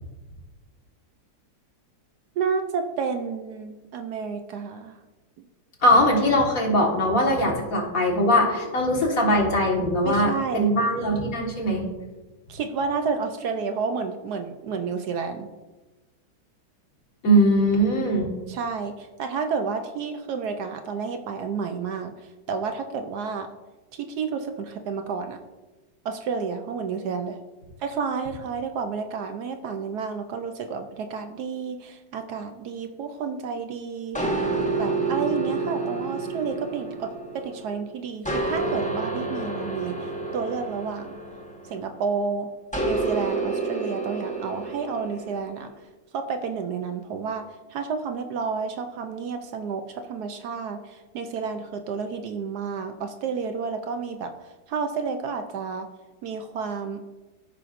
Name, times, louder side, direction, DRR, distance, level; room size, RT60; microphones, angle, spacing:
voice 1, 2.4-5.0 10.0-10.7 12.5-15.5 18.5-23.5 23.9-25.4 26.0-27.4 27.8-34.2 34.8-41.2 41.7-42.5 42.9-45.7 46.1-54.3 54.7-55.9 56.2-57.0, right 5 dB, 70° right, 6 dB, 1.0 m, -30 dB
voice 2, 5.8-11.9 17.2-18.3, equal, 50° left, -1 dB, 2.0 m, -21 dB
sound 1, 34.1-37.7 38.2-42.0 42.7-45.4, right 3 dB, 5° left, 1.0 m, -29 dB
14.0 x 5.7 x 2.5 m, 1.2 s
omnidirectional pair, 2.0 m